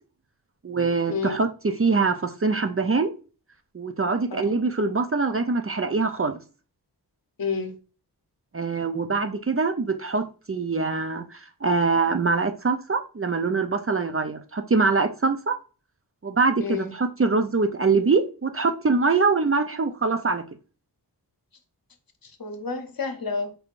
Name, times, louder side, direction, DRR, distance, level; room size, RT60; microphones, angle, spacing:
voice 1, 0.6-3.1 3.7-6.4 8.5-15.5 16.2-20.4, right 4 dB, 35° right, 0.4 m, -24 dB
voice 2, 7.4-7.7 16.6-16.9 22.2-23.5, left 5 dB, 60° left, 0.8 m, -30 dB
4.5 x 3.5 x 2.4 m
wide cardioid pair, 70°, 41 cm